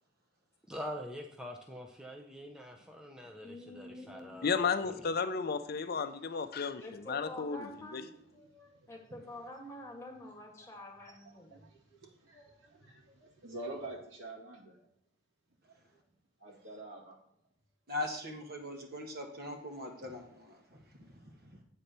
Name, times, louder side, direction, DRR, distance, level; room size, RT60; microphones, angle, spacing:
voice 1, 0.7-5.1, equal, 5° right, 2 dB, 0.6 m, -45 dB
voice 2, 3.4-4.4 6.8-8.1 8.9-11.7, left 1 dB, 15° left, 1 dB, 1.5 m, -47 dB
voice 3, 4.4-8.0, left 5 dB, 55° left, 10 dB, 0.6 m, -33 dB
voice 4, 8.3-8.9 10.6-10.7 11.0-14.9 15.6-15.7 16.4-17.2 21.1-21.3, right 2 dB, 80° right, -2 dB, 2.4 m, -48 dB
voice 5, 17.9-20.8 21.2-21.3, left 1 dB, 50° right, 3 dB, 1.5 m, -40 dB
8.2 x 4.4 x 6.7 m, 0.67 s
head